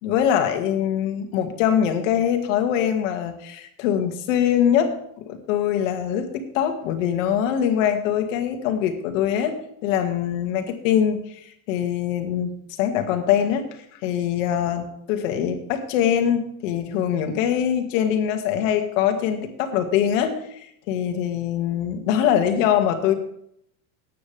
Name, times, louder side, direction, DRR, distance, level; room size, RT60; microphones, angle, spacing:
voice 1, 0.0-9.6 9.8-13.6 14.0-23.1, left 9 dB, 60° left, 5 dB, 2.1 m, -23 dB
18.0 x 9.3 x 3.5 m, 0.71 s
supercardioid pair, 170°, 43 cm